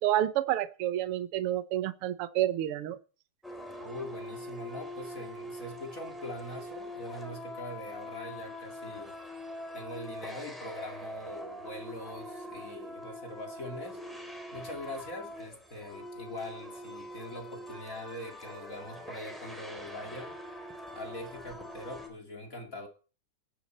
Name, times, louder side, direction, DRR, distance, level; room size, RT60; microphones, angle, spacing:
voice 1, 0.0-3.0, right 13 dB, 70° right, 1.4 m, -29 dB
sound 1, 3.4-22.1, equal, ahead, 3.5 m, -43 dB
voice 2, 3.8-9.2 9.7-14.0 14.5-20.4 20.9-22.9, left 1 dB, 30° left, 2.3 m, -42 dB
17.5 x 11.0 x 4.3 m
omnidirectional pair, 3.6 m